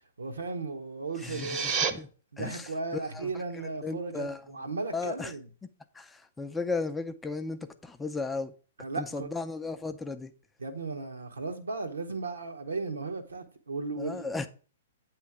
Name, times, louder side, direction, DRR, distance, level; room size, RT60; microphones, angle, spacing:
voice 1, 0.2-2.0 2.3-5.4 8.8-9.3 10.6-14.2, right 3 dB, 80° right, 1.0 m, -36 dB
sound 1, 1.1-1.9, right 6 dB, 35° right, 0.8 m, -30 dB
voice 2, 1.2-2.1 2.4-4.6 4.9-5.3 5.9-8.5 9.0-10.3 14.0-14.5, left 3 dB, 10° left, 0.5 m, -35 dB
8.2 x 3.2 x 6.0 m
figure-of-eight pair, 115°, 0 cm